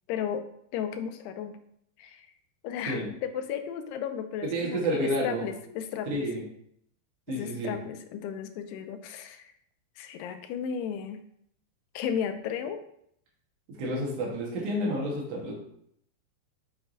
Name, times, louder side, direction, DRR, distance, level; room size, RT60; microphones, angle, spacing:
voice 1, 0.1-0.4 0.7-1.6 2.0-2.3 2.6-6.3 7.3-9.5 10.0-11.2 11.9-12.8, left 8 dB, 90° left, 8 dB, 2.7 m, -34 dB
voice 2, 4.5-5.4 6.1-6.4 7.3-7.7 13.8-15.5, right 1 dB, 55° right, -4 dB, 2.0 m, -30 dB
8.0 x 5.8 x 2.7 m, 0.69 s
omnidirectional pair, 4.6 m